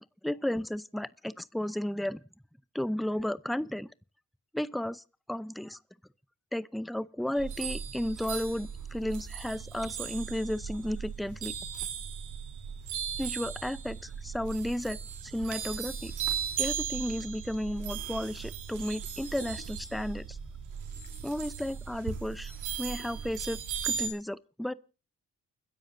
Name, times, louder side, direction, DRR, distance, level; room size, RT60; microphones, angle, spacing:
voice 1, 0.2-2.2 2.7-3.9 4.5-5.0 5.3-5.8 6.5-11.5 13.2-16.1 16.6-20.4 21.2-22.5 22.8-24.7, left 1 dB, ahead, 0.6 m, -33 dB
sound 1, 7.4-24.1, right 8 dB, 85° right, 3.5 m, -37 dB
29.5 x 10.5 x 2.7 m
cardioid pair, 90°, 30 cm